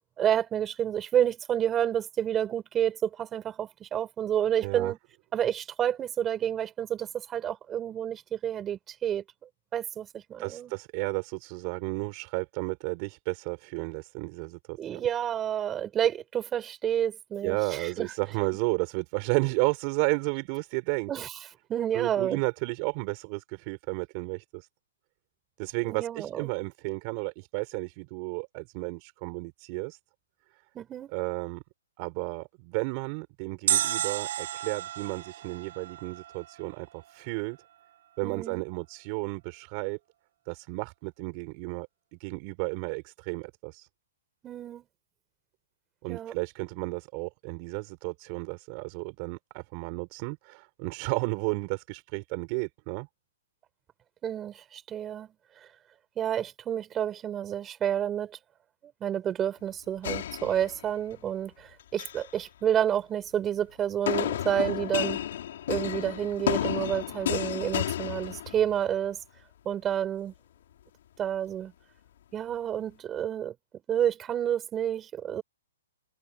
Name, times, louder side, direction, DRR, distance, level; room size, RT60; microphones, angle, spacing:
voice 1, 0.2-5.0 5.3-9.2 9.7-10.7 14.8-18.1 21.1-21.3 21.7-22.4 25.8-26.5 30.7-31.1 38.2-38.6 44.4-44.9 46.1-46.3 54.2-55.3 56.2-58.4 59.0-65.2 65.7-69.2 69.6-70.3 71.2-71.7 72.3-73.5 73.9-75.4, right 10 dB, 15° right, 5.6 m, -29 dB
voice 2, 4.6-4.9 10.4-15.1 17.4-21.1 21.9-24.7 25.6-30.0 31.1-31.6 32.0-37.6 38.2-40.0 40.4-41.9 42.2-43.9 46.0-53.1, right 32 dB, 30° right, 4.9 m, -33 dB
sound 1, 33.7-36.8 37.0-37.1, right 12 dB, 50° right, 3.7 m, -31 dB
Neighbor Throwing Away Glass, 60.0-61.1 61.8-62.3 64.1-68.9, left 11 dB, 55° left, 3.8 m, -31 dB
hypercardioid pair, 155°, 0 cm